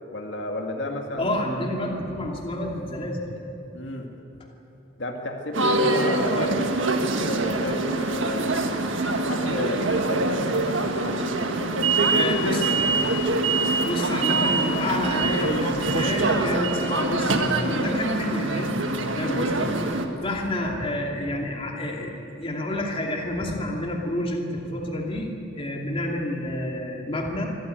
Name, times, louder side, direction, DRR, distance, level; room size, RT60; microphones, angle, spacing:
voice 1, 0.1-1.4 3.7-4.1 5.0-6.6 7.2-8.6 9.0-12.7 19.2-19.6, left 1 dB, 70° left, 2 dB, 2.1 m, -32 dB
voice 2, 1.2-3.2 6.4-6.5 12.1-12.7 13.8-18.8 19.2-19.7 20.2-25.3 25.5-27.5, left 1 dB, 30° left, 0 dB, 2.6 m, -29 dB
sound 1, 5.5-20.1, right 2 dB, 80° right, 1.6 m, -24 dB
25.0 x 14.5 x 9.2 m, 2.8 s
head